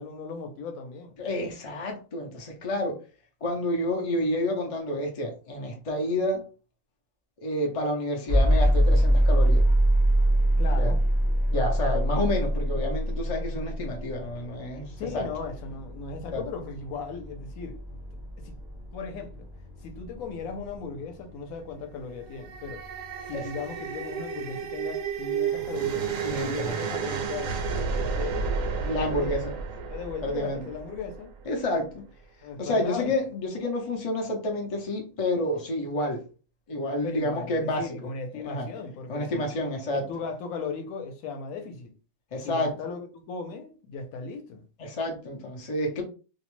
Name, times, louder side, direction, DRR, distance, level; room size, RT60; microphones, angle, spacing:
voice 1, 0.0-1.2 10.6-11.1 15.0-18.0 18.4-18.5 18.9-19.5 19.8-22.8 23.3-28.4 28.8-29.3 29.9-31.3 32.4-33.2 37.0-39.5 39.9-41.9 42.4-44.6, left 5 dB, 75° left, 1.0 m, -37 dB
voice 2, 1.2-3.0 3.4-6.4 7.4-9.6 10.8-10.9 11.5-14.9 15.1-15.3 16.3-16.4 23.3-23.4 26.2-26.9 28.9-29.5 30.2-30.6 31.5-32.0 32.6-36.2 36.7-37.8 38.3-38.7 39.1-40.1 42.3-42.7 44.8-46.0, left 1 dB, 55° left, 0.3 m, -29 dB
sound 1, 8.3-24.2, right 1 dB, 30° right, 0.4 m, -26 dB
sound 2, 22.2-31.5, right 6 dB, 70° right, 1.0 m, -32 dB
2.6 x 2.1 x 3.0 m
omnidirectional pair, 1.5 m